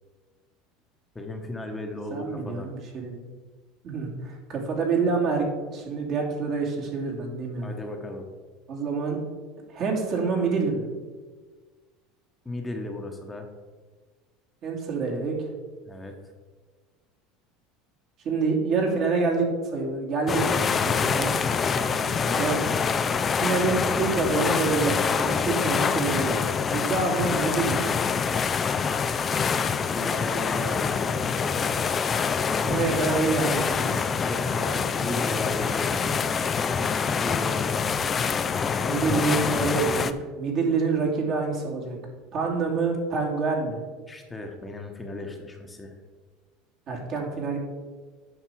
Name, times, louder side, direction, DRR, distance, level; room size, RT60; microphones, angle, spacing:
voice 1, 1.1-2.7 7.6-8.2 12.4-13.5 15.9-16.1 21.7-22.6 25.3-25.9 29.9-31.7 34.2-36.5 37.0-38.8 44.1-45.9, left 2 dB, 15° left, 2 dB, 1.3 m, -36 dB
voice 2, 2.1-3.2 3.8-7.7 8.7-9.2 9.7-10.8 14.6-15.4 18.2-21.3 22.4-22.6 23.4-26.4 26.7-27.9 32.6-34.1 36.6-36.7 38.8-42.0 42.3-43.8 46.9-47.6, right 4 dB, 50° right, -1 dB, 2.6 m, -27 dB
sound 1, 20.3-40.1, left 6 dB, 30° left, 0.5 m, -25 dB
9.1 x 5.7 x 4.8 m, 1.4 s
hypercardioid pair, 95°, 0 cm